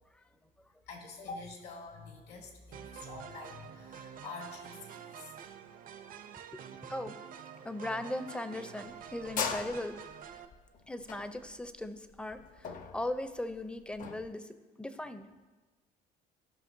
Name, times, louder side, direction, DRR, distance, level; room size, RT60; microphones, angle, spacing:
voice 1, 0.9-5.3, left 3 dB, 75° left, 1 dB, 1.7 m, -46 dB
sound 1, 2.7-10.5, right 8 dB, 55° right, 0.6 m, -48 dB
voice 2, 7.6-9.9 10.9-14.5 14.8-15.3, left 1 dB, 5° left, 10 dB, 0.5 m, -38 dB
sound 2, 8.8-14.3, left 6 dB, 50° left, 0.7 m, -39 dB
15.0 x 5.5 x 2.6 m, 1.2 s
cardioid pair, 110°, 17 cm